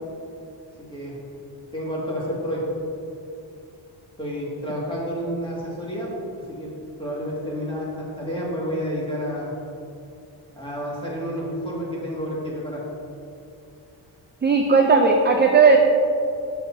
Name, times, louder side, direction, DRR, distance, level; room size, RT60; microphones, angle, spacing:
voice 1, 0.8-1.2 1.7-2.6 4.2-6.1 6.5-6.7 7.0-9.5 10.5-12.8, equal, 10° left, -6 dB, 2.0 m, -30 dB
voice 2, 14.4-15.8, right 4 dB, 25° right, 2 dB, 0.4 m, -16 dB
11.5 x 7.1 x 2.7 m, 2.6 s
wide cardioid pair, 165°, 46 cm